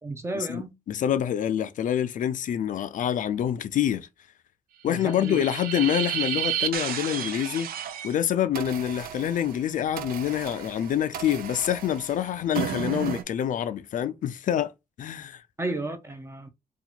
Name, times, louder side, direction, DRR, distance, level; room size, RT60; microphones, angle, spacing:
voice 1, 0.0-0.7 4.9-5.4 15.6-16.5, right 2 dB, 15° right, 0.6 m, -33 dB
voice 2, 0.9-4.1 4.8-7.7 8.0-14.7 15.0-15.4, left 10 dB, 60° left, 0.4 m, -26 dB
sound 1, 4.9-8.2 8.5-13.2, right 10 dB, 80° right, 0.5 m, -33 dB
2.8 x 2.4 x 4.1 m
cardioid pair, 140°, 15 cm